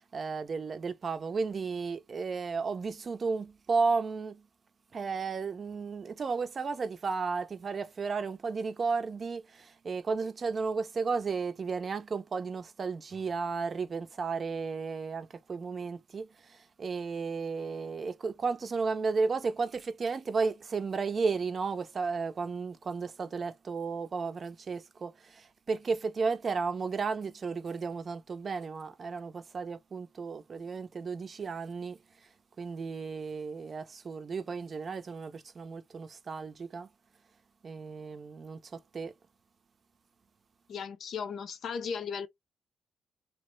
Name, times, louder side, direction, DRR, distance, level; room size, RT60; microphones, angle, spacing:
voice 1, 0.0-4.4 4.9-32.0 32.6-36.9 37.6-38.6 38.9-39.1, right 4 dB, 40° right, 0.5 m, -33 dB
voice 2, 40.7-42.3, left 6 dB, 60° left, 0.6 m, -36 dB
3.0 x 2.0 x 3.1 m
cardioid pair, 90°, 0 cm